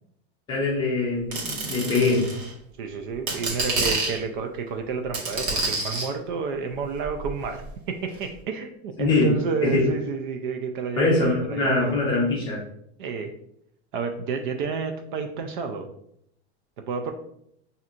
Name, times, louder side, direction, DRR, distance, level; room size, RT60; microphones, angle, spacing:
voice 1, 0.5-2.3 9.0-9.9 11.0-12.6, left 3 dB, 15° left, -4 dB, 0.6 m, -23 dB
sound 1, 1.3-2.5 3.1-4.2 5.1-6.1 7.0-7.7 8.2-8.3, right 3 dB, 75° right, 1.3 m, -28 dB
voice 2, 2.8-11.9 13.0-13.3 13.9-15.9 16.8-17.1, right 5 dB, 50° right, 5 dB, 0.4 m, -30 dB
5.7 x 2.7 x 2.4 m, 0.72 s
supercardioid pair, 180°, 33 cm